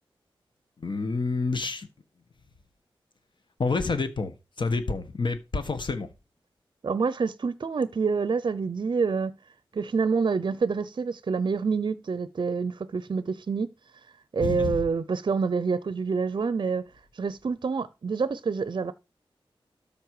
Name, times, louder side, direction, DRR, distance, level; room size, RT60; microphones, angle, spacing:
voice 1, 0.8-1.9 3.6-6.1 14.4-14.8, left 4 dB, 55° left, 1.5 m, -28 dB
voice 2, 6.8-9.3 9.7-13.7 14.3-16.9 17.1-18.9, right 5 dB, 55° right, 0.5 m, -27 dB
13.0 x 5.2 x 4.8 m
wide cardioid pair, 120°, 9 cm